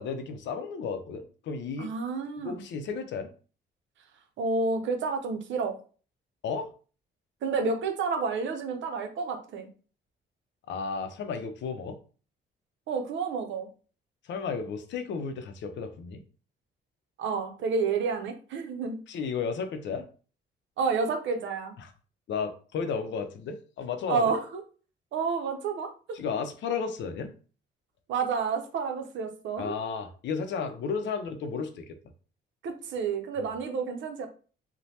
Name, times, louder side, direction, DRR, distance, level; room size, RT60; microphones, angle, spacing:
voice 1, 0.0-1.9 2.4-3.3 6.4-6.7 10.7-12.0 14.3-16.2 19.1-20.0 21.8-21.9 22.3-24.3 26.1-27.3 29.6-32.0, left 5 dB, 65° left, 7 dB, 0.5 m, -33 dB
voice 2, 1.8-2.6 4.4-5.8 7.4-9.7 12.9-13.7 17.2-19.0 20.8-21.7 24.1-24.6 25.1-26.2 28.1-29.7 32.6-34.3, right 5 dB, 70° right, 5 dB, 0.6 m, -30 dB
3.1 x 2.1 x 2.8 m, 0.38 s
cardioid pair, 90°, 20 cm